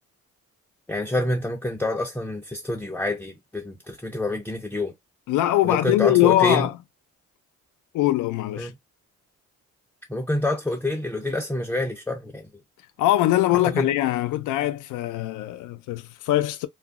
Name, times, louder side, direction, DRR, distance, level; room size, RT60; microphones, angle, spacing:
voice 1, 0.9-4.9 5.6-6.7 8.6-8.7 10.1-12.5 13.6-13.9, left 1 dB, 5° left, 0.5 m, -27 dB
voice 2, 5.3-6.8 7.9-8.7 13.0-16.7, left 15 dB, 85° left, 0.5 m, -22 dB
2.3 x 2.0 x 3.5 m
cardioid pair, 90°, 30 cm